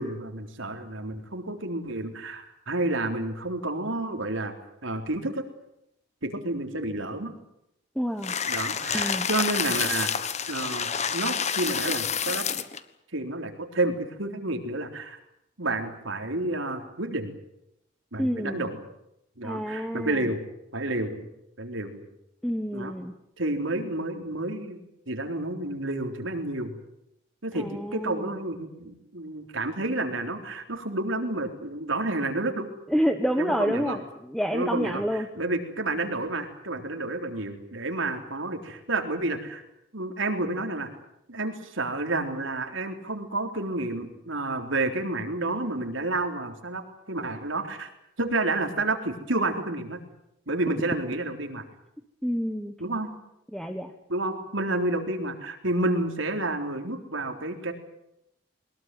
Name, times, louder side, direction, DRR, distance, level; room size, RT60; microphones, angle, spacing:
voice 1, 0.0-4.5 4.8-5.4 6.2-7.3 8.4-10.1 10.5-12.5 13.1-15.2 15.6-17.3 18.1-18.8 19.4-20.4 20.7-21.3 21.6-22.0 22.7-22.9 23.4-24.8 25.1-26.7 27.4-32.7 33.4-34.0 34.5-39.6 39.9-40.9 41.3-46.8 47.1-47.9 48.2-50.0 50.5-51.6 52.8-53.1 54.1-57.7, right 2 dB, 75° right, 5 dB, 3.9 m, -30 dB
voice 2, 7.9-8.3 8.9-9.3 18.2-18.6 19.4-20.3 22.4-23.1 27.5-28.3 32.9-35.3 52.2-52.7 53.5-53.9, equal, ahead, 6 dB, 1.3 m, -28 dB
sound 1, 8.2-12.8, left 7 dB, 35° left, 1.3 m, -28 dB
22.5 x 20.5 x 9.3 m, 0.80 s
head